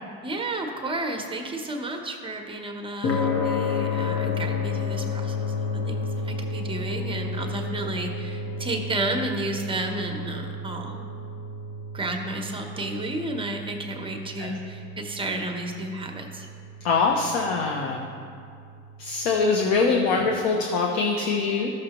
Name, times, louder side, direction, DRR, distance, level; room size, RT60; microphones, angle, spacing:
voice 1, 0.2-11.1 11.9-16.5, right 1 dB, 15° right, 3 dB, 0.8 m, -32 dB
sound 1, 3.0-19.5, left 3 dB, 50° left, 0.9 m, -32 dB
voice 2, 16.8-18.1 19.0-21.7, left 4 dB, 85° left, 0 dB, 0.9 m, -23 dB
13.0 x 6.5 x 2.9 m, 2.3 s
cardioid pair, 120°, 32 cm